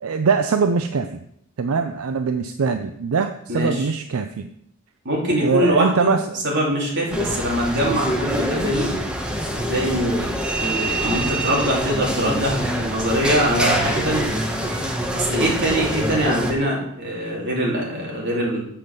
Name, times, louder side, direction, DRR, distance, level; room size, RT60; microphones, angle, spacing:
voice 1, 0.0-1.2 1.6-4.5 5.4-6.4, right 5 dB, 85° right, 8 dB, 0.5 m, -22 dB
voice 2, 3.5-3.9 5.0-6.1 6.4-8.9 9.7-10.3 10.6-14.3 15.1-18.6, equal, 55° right, -3 dB, 2.8 m, -23 dB
sound 1, 7.1-16.5, right 1 dB, 5° right, 1.0 m, -25 dB
7.7 x 5.3 x 6.6 m, 0.73 s
head